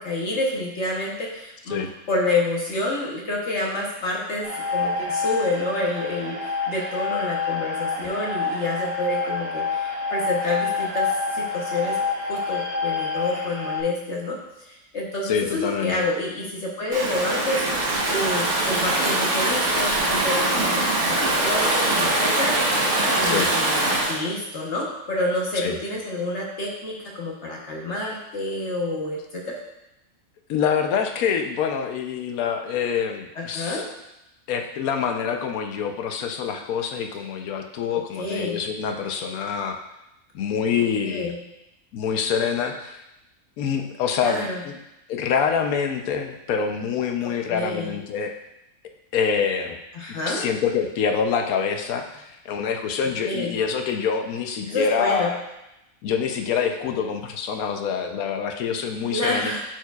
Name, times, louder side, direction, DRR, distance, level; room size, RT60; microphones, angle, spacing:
voice 1, 0.0-12.0 12.3-22.8 23.2-29.6 33.3-33.8 38.2-38.6 41.0-41.4 44.2-44.6 47.5-48.0 49.9-50.4 53.3-53.6 54.7-55.3 59.1-59.6, left 2 dB, 55° left, -2 dB, 1.2 m, -28 dB
sound 1, 4.4-13.8, left 4 dB, 80° right, 1.8 m, -27 dB
voice 2, 15.2-16.0 23.2-23.5 25.6-25.8 30.5-33.8 34.5-39.8 40.3-41.3 41.9-43.0 43.6-44.8 45.1-48.3 49.1-49.8 50.3-55.4 56.0-59.5, left 6 dB, 85° left, 5 dB, 1.1 m, -26 dB
Stream / Ocean, 16.9-24.2, right 2 dB, 60° right, 1.4 m, -22 dB
10.5 x 4.5 x 2.3 m, 0.90 s
omnidirectional pair, 1.5 m